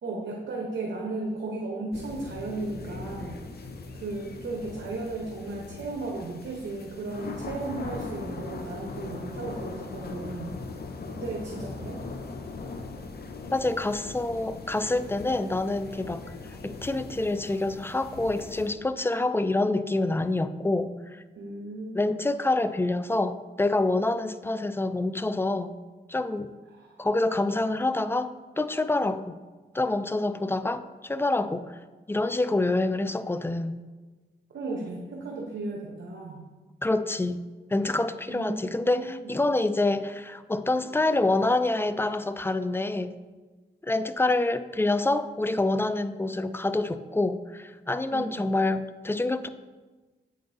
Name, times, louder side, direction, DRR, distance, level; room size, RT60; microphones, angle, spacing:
voice 1, 0.0-10.6 11.0-12.0 21.3-22.1 26.7-27.0 34.5-36.4 38.3-39.3 48.1-48.4, right 2 dB, 80° right, -1 dB, 0.9 m, -35 dB
sound 1, 1.9-18.7, left 3 dB, 55° left, 0.7 m, -40 dB
voice 2, 13.5-16.2 16.6-21.2 21.9-25.7 26.1-26.5 27.0-29.4 29.7-31.8 32.1-33.7 36.8-37.4 37.7-43.1 43.8-49.5, left 2 dB, 10° left, 12 dB, 0.3 m, -27 dB
7.7 x 5.2 x 2.7 m, 1.3 s
cardioid pair, 60°, 19 cm